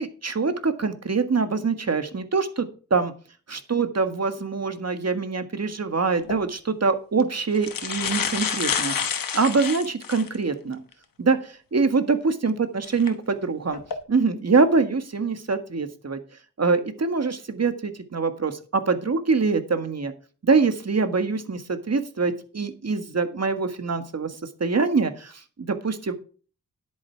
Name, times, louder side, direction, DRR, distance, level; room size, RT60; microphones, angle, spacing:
voice 1, 0.0-3.1 3.5-10.8 11.2-13.8 14.1-16.2 16.6-20.1 20.4-26.1, right 4 dB, 50° right, 9 dB, 1.7 m, -24 dB
sound 1, 6.2-6.4 7.2-7.3 7.5-10.4 10.9-11.0 12.9-13.1 13.7-14.0, left 7 dB, 90° left, 1.1 m, -28 dB
10.5 x 8.3 x 4.7 m, 0.39 s
cardioid pair, 55°, 33 cm